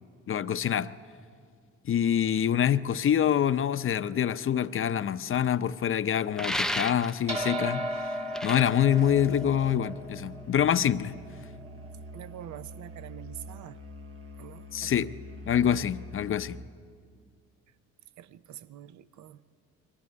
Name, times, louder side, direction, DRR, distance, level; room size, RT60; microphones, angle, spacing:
voice 1, 0.3-0.9 1.9-8.1 8.4-11.2 14.7-15.1 15.5-16.6, left 9 dB, 45° left, 0.6 m, -26 dB
sound 1, 6.4-7.4 8.1-9.8, left 1 dB, ahead, 0.5 m, -33 dB
sound 2, 7.3-11.9, equal, 20° right, 1.6 m, -36 dB
Musical instrument, 8.9-16.7, equal, 50° right, 1.2 m, -45 dB
voice 2, 12.1-13.8 14.4-15.1 18.2-19.4, right 11 dB, 70° right, 0.7 m, -45 dB
22.5 x 15.5 x 9.7 m
cardioid pair, 90°, 30 cm